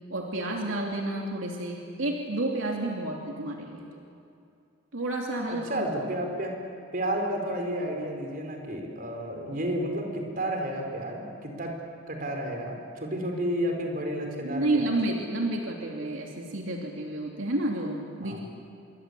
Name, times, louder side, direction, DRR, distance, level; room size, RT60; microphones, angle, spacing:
voice 1, 0.1-3.9 4.9-5.8 14.4-18.4, right 1 dB, 80° right, 0 dB, 2.9 m, -30 dB
voice 2, 5.6-6.5 6.9-11.7 12.1-14.9 18.2-18.4, right 1 dB, 45° right, 2 dB, 4.8 m, -31 dB
27.0 x 23.5 x 8.4 m, 2.5 s
head